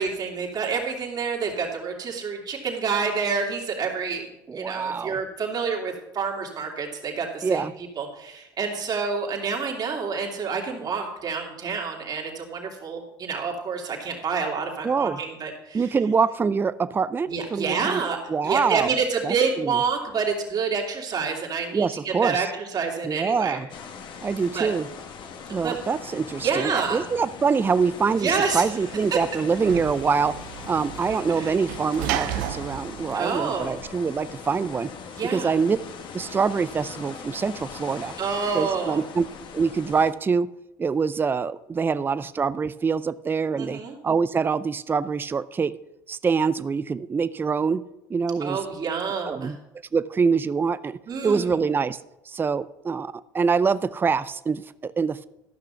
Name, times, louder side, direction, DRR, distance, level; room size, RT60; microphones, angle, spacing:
voice 1, 0.0-4.2 4.5-7.6 8.0-15.9 17.3-23.6 24.4-24.7 25.6-25.8 26.4-27.1 28.2-28.6 31.1-31.6 33.1-33.8 35.1-35.5 38.2-39.0 43.6-43.9 48.4-49.5 51.1-51.6, right 5 dB, 40° right, 0 dB, 2.9 m, -28 dB
voice 2, 4.5-5.2 7.4-7.7 14.8-15.2 15.7-18.0 18.3-18.9 19.2-19.8 21.7-22.4 23.0-23.7 24.2-24.9 25.5-30.4 30.7-34.9 35.3-35.8 36.1-38.1 38.5-39.3 39.5-40.5 40.8-45.8 46.1-47.8 48.1-48.6 49.3-49.6 49.9-52.0 52.3-55.2, right 5 dB, 20° right, 16 dB, 0.4 m, -25 dB
sound 1, 23.7-40.1, left 6 dB, 55° left, 1.4 m, -40 dB
Sliding door / Slam, 28.3-34.2, right 13 dB, 80° right, 0.6 m, -34 dB
13.0 x 6.0 x 5.7 m, 0.90 s
supercardioid pair, 85°, 10 cm